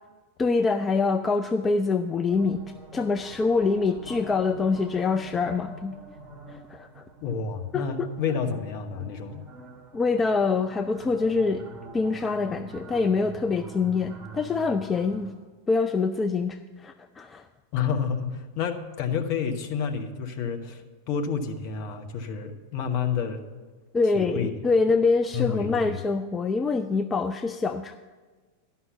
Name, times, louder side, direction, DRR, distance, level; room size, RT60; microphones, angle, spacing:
voice 1, 0.4-2.6 2.9-6.0 6.5-7.0 7.7-8.1 9.9-11.6 11.9-15.3 15.7-17.5 23.9-28.0, left 4 dB, 15° left, 8 dB, 0.3 m, -25 dB
sound 1, 2.3-15.3, right 2 dB, 15° right, 1.9 m, -45 dB
voice 2, 7.2-9.4 17.7-23.4 24.1-24.5 25.3-26.0, left 6 dB, 40° left, 6 dB, 0.9 m, -29 dB
11.0 x 5.7 x 7.0 m, 1.4 s
figure-of-eight pair, 90°, 0 cm